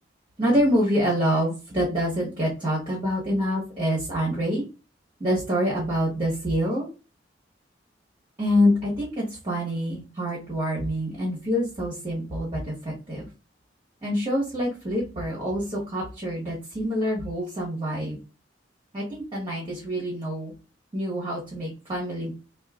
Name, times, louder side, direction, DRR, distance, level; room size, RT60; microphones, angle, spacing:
voice 1, 0.4-4.6 5.2-6.9 8.4-13.3 14.0-18.2 18.9-20.5 20.9-22.3, equal, 25° right, -5 dB, 1.4 m, -26 dB
4.3 x 2.7 x 2.5 m, 0.31 s
head